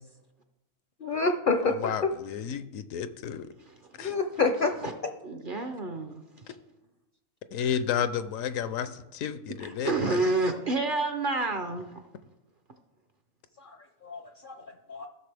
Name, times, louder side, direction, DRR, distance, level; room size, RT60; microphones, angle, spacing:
voice 1, 1.0-1.7 4.0-4.7 14.0-14.6 14.9-15.1, left 4 dB, 55° left, 6 dB, 0.6 m, -27 dB
voice 2, 1.6-3.5 4.0-4.1 7.5-10.2, left 8 dB, 75° left, 12 dB, 1.0 m, -32 dB
voice 3, 5.2-6.2 6.5-6.6 9.6-12.0, right 3 dB, 50° right, 6 dB, 0.7 m, -29 dB
15.5 x 6.4 x 3.4 m, 0.98 s
omnidirectional pair, 1.5 m